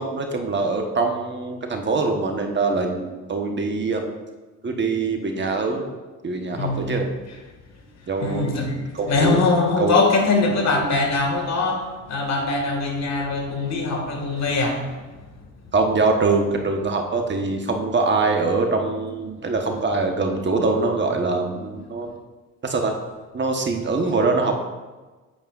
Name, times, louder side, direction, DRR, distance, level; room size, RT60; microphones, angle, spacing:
voice 1, 0.0-4.1 4.6-5.8 6.2-7.1 8.1-8.5 8.9-9.4 9.8-10.0 15.7-22.2 22.6-22.9 23.3-24.6, right 3 dB, 35° right, 3 dB, 1.2 m, -23 dB
voice 2, 6.5-6.9 8.2-15.0, left 3 dB, 60° left, 2 dB, 2.0 m, -22 dB
9.1 x 8.7 x 2.5 m, 1.2 s
cardioid pair, 90°, 30 cm